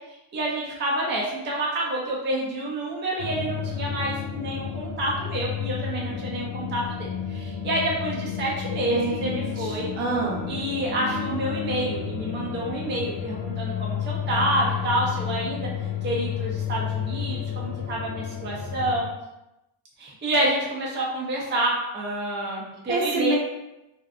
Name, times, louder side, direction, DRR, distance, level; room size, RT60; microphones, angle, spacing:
voice 1, 0.3-9.9 10.5-15.7 16.0-19.1 20.0-23.4, right 1 dB, 25° right, -3 dB, 0.5 m, -28 dB
sound 1, 3.2-19.0, left 8 dB, 65° left, 0.5 m, -31 dB
voice 2, 8.9-10.5 22.9-23.4, right 3 dB, 70° right, -3 dB, 0.8 m, -27 dB
2.6 x 2.3 x 2.3 m, 0.92 s
cardioid pair, 115°, 50 cm